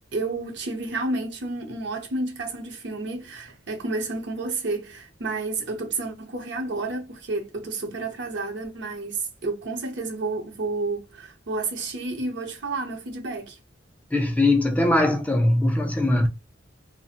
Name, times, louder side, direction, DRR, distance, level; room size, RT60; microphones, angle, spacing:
voice 1, 0.1-13.6, right 3 dB, 65° right, 0.7 m, -30 dB
voice 2, 14.1-16.3, left 1 dB, 10° left, 0.3 m, -21 dB
2.4 x 2.0 x 2.7 m
head